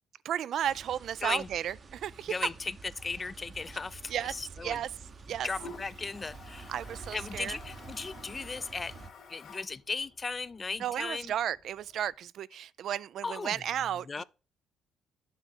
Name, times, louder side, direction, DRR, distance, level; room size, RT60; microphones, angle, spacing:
voice 1, 0.2-2.3 4.1-4.3 4.6-4.9 5.3-5.5 6.7-7.6 10.8-14.2, right 10 dB, 70° right, 0.4 m, -33 dB
Toilet flush, 0.6-12.1, left 4 dB, 75° left, 2.8 m, -53 dB
sound 1, 0.6-9.1, right 5 dB, 40° right, 0.8 m, -49 dB
voice 2, 2.3-2.7 3.0-4.8 5.4-6.7 7.1-9.0 9.3-11.3 13.2-13.6 14.1-14.2, left 4 dB, 30° left, 0.4 m, -36 dB
8.2 x 5.9 x 4.2 m
cardioid pair, 90°, 0 cm